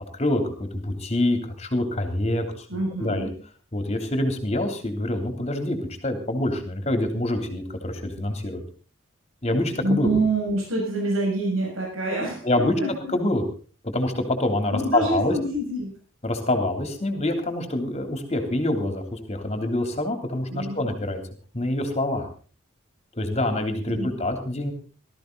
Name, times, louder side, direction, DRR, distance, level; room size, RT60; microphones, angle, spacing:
voice 1, 0.1-2.7 3.0-3.3 3.7-5.8 6.0-8.6 9.4-10.1 12.4-12.7 13.1-13.4 13.9-15.4 16.2-21.2 21.5-22.3 23.1-24.7, left 1 dB, 30° left, 6 dB, 3.3 m, -26 dB
voice 2, 2.7-3.3 9.8-13.1 14.7-16.0 20.5-20.9 23.8-24.2, right 2 dB, 85° right, -1 dB, 6.9 m, -26 dB
18.5 x 14.0 x 4.0 m, 0.38 s
head